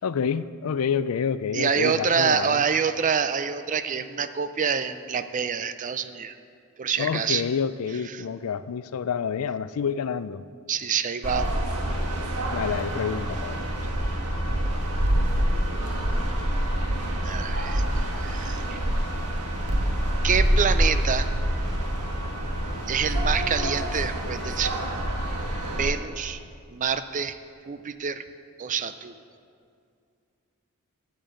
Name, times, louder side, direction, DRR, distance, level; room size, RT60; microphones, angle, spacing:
voice 1, 0.0-2.6 7.0-10.4 12.5-13.7, left 6 dB, 70° left, 15 dB, 0.4 m, -28 dB
voice 2, 1.5-6.4 6.8-7.4 8.1-8.2 10.7-11.5 17.2-17.8 18.2-18.8 20.2-21.3 22.9-24.8 25.8-26.4 26.7-27.4 27.7-28.2 28.6-29.1, right 6 dB, 35° right, 11 dB, 0.4 m, -26 dB
sound 1, 11.2-25.9, right 1 dB, 90° right, 1.5 m, -26 dB
9.0 x 8.7 x 7.7 m, 2.3 s
head